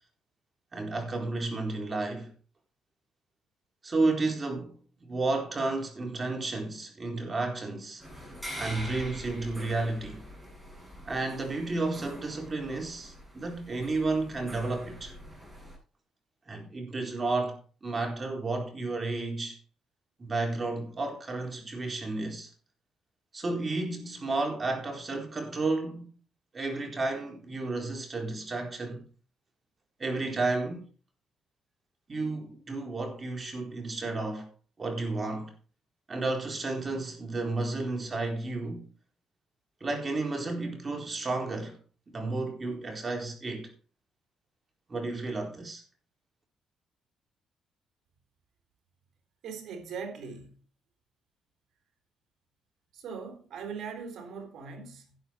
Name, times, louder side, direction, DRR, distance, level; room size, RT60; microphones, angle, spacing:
voice 1, 0.7-2.3 3.8-8.0 8.6-10.3 11.1-15.1 16.5-19.6 20.2-22.5 23.3-26.1 26.5-29.0 30.0-30.9 32.1-34.5 34.8-35.5 36.1-38.9 39.8-41.8 42.1-43.7 44.9-45.8, right 3 dB, 30° right, 4.2 m, -32 dB
sound 1, 8.0-15.8, equal, 10° right, 7.7 m, -44 dB
voice 2, 49.4-50.6 52.9-55.2, right 5 dB, 70° right, 3.6 m, -40 dB
11.5 x 9.2 x 4.6 m
cardioid pair, 90°, 0 cm